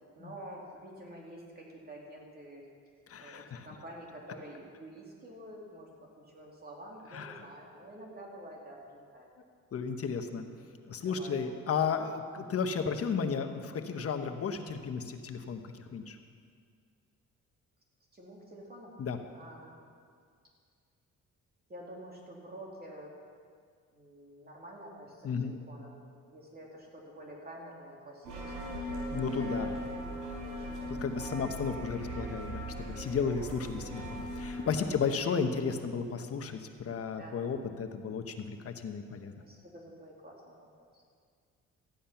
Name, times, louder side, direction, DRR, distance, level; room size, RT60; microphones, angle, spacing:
voice 1, 0.2-2.6 3.2-5.9 6.2-9.3 10.9-11.4 18.1-18.9 19.3-19.7 21.7-23.1 23.9-26.0 26.3-29.4 30.3-30.8 31.3-31.5 33.2-33.5 37.2-37.4 39.4-40.7, right 1 dB, 30° right, -2 dB, 2.8 m, -48 dB
voice 2, 3.1-3.7 7.1-7.5 9.7-10.5 10.9-16.2 19.0-19.2 25.2-25.5 29.1-29.8 30.9-39.3, left 6 dB, 50° left, 6 dB, 1.0 m, -34 dB
sound 1, 28.2-34.6, equal, 85° right, 4.2 m, -38 dB
14.5 x 10.0 x 5.8 m, 2.1 s
cardioid pair, 90°, 30 cm